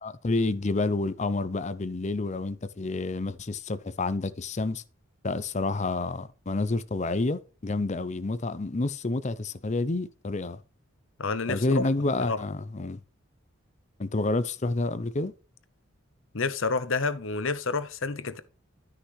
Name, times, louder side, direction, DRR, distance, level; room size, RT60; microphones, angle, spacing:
voice 1, 0.0-4.8 5.2-10.6 11.5-13.0 14.0-15.3, left 2 dB, 35° left, 0.6 m, -29 dB
voice 2, 11.2-11.6 12.3-12.4 16.3-18.4, left 4 dB, 65° left, 0.9 m, -29 dB
13.0 x 5.9 x 3.2 m
head